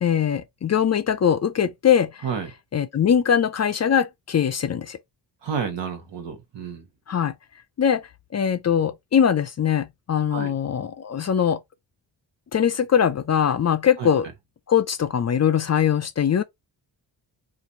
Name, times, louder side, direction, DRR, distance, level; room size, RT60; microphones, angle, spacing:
voice 1, 0.0-2.2 2.7-5.0 7.1-7.3 7.8-11.6 12.5-14.3 14.7-16.4, left 8 dB, 40° left, 0.4 m, -21 dB
voice 2, 5.4-6.8 10.3-10.6 14.0-14.1, right 6 dB, 75° right, 1.1 m, -30 dB
2.9 x 2.5 x 3.8 m
cardioid pair, 80°, 44 cm